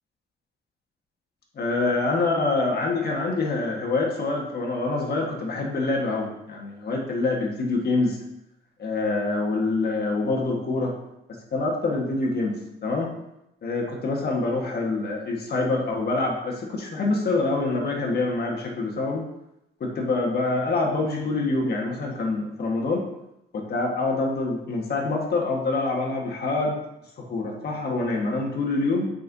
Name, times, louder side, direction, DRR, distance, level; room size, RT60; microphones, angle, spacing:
voice 1, 1.5-8.2 8.8-10.9 11.5-13.1 13.6-19.2 19.8-23.1 23.5-26.8 27.2-29.1, left 3 dB, 55° left, -1 dB, 1.6 m, -26 dB
8.9 x 5.4 x 2.8 m, 0.85 s
cardioid pair, 90°, 20 cm